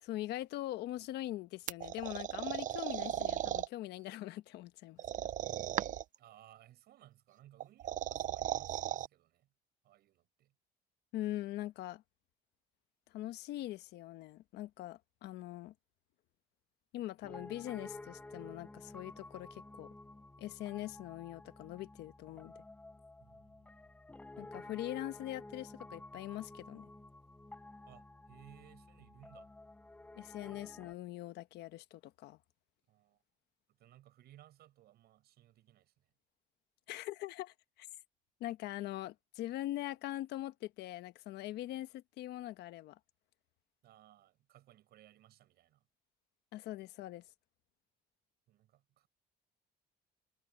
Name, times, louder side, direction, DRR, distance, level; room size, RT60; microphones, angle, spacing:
voice 1, 0.0-5.0 11.1-12.0 13.1-15.7 16.9-19.9 20.4-22.5 24.4-26.9 30.2-32.4 36.9-37.9 38.4-43.0 46.5-47.2, left 15 dB, 80° left, 1.2 m, -42 dB
sound 1, 1.7-3.7 5.0-6.2 7.6-9.1, right 11 dB, 50° right, 0.5 m, -37 dB
voice 2, 6.2-9.5 9.8-10.5 23.2-23.9 27.9-29.5 32.9-33.2 33.7-36.1 43.8-45.8 48.5-49.1, right 13 dB, 70° right, 7.6 m, -61 dB
Piano, 17.2-30.9, left 2 dB, 10° left, 0.6 m, -52 dB
cardioid pair, 110°, 17 cm